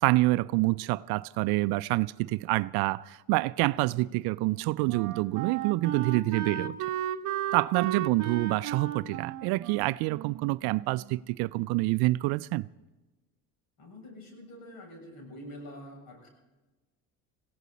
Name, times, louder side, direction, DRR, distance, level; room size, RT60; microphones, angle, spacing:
voice 1, 0.0-6.8 7.5-12.7, right 21 dB, 65° right, 0.5 m, -27 dB
Wind instrument woodwind instrument, 3.9-11.2, right 10 dB, 45° right, 1.1 m, -35 dB
voice 2, 13.8-16.3, equal, 60° left, 7.4 m, -46 dB
21.5 x 16.5 x 4.1 m
supercardioid pair, 95°, 42 cm